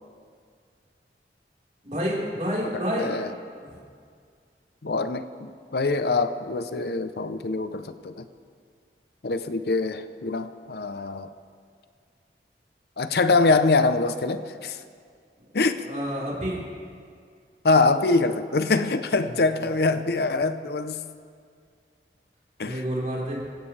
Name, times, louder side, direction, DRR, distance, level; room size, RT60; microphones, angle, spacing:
voice 1, 1.8-3.2 3.5-3.6 15.8-16.6 19.2-19.5 22.6-23.4, equal, 40° right, -5 dB, 4.2 m, -29 dB
voice 2, 2.7-3.3 4.8-8.3 9.2-11.3 13.0-14.8 15.5-15.8 17.6-21.0 22.6-22.8, left 3 dB, 65° left, 11 dB, 0.6 m, -24 dB
27.5 x 16.0 x 3.3 m, 2.2 s
head